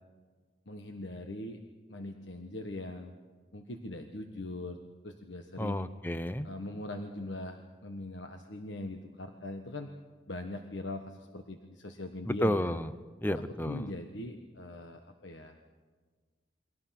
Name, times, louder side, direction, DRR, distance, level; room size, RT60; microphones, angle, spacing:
voice 1, 0.7-1.6 1.9-3.1 3.5-4.8 5.0-5.8 6.4-9.9 10.3-12.7 13.6-15.6, left 1 dB, 85° left, 5 dB, 1.4 m, -41 dB
voice 2, 5.6-6.5 12.2-12.9 13.2-13.9, left 1 dB, 10° left, 12 dB, 0.7 m, -31 dB
29.0 x 23.0 x 6.0 m, 1.4 s
head